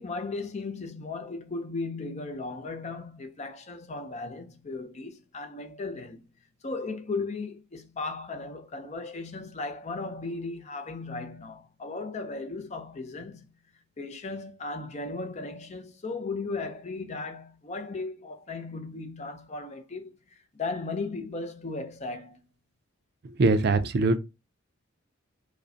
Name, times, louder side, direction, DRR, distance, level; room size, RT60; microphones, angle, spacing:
voice 1, 0.0-6.3 6.6-13.5 14.0-22.5, left 3 dB, 35° left, 0.5 m, -36 dB
voice 2, 23.4-24.2, right 3 dB, 50° right, 0.4 m, -22 dB
5.0 x 2.1 x 2.6 m
head